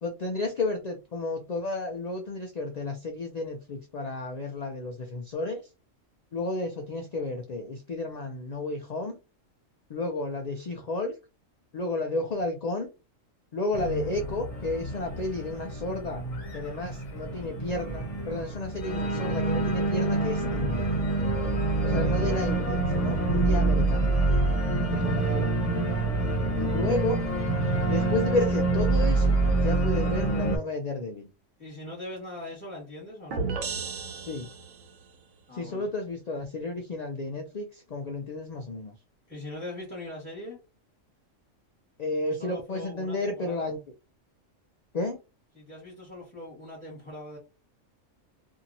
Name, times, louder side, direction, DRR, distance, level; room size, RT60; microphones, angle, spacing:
voice 1, 0.0-5.6 6.3-9.1 9.9-11.1 11.7-12.9 13.5-16.2 16.5-20.8 21.8-24.1 24.9-25.5 26.6-27.2 27.9-29.3 29.6-31.2 34.3-34.5 35.6-38.9 42.0-43.8 44.9-45.2, left 2 dB, 75° left, 0.3 m, -32 dB
Organ, 13.7-30.6, right 2 dB, 30° left, 0.9 m, -26 dB
voice 2, 25.1-25.5 26.1-27.0 31.6-33.5 35.5-35.9 39.3-40.6 42.2-43.7 45.5-47.4, left 1 dB, 5° left, 1.4 m, -41 dB
sound 1, 33.3-35.0, right 4 dB, 85° right, 1.1 m, -33 dB
2.8 x 2.6 x 2.6 m
omnidirectional pair, 1.3 m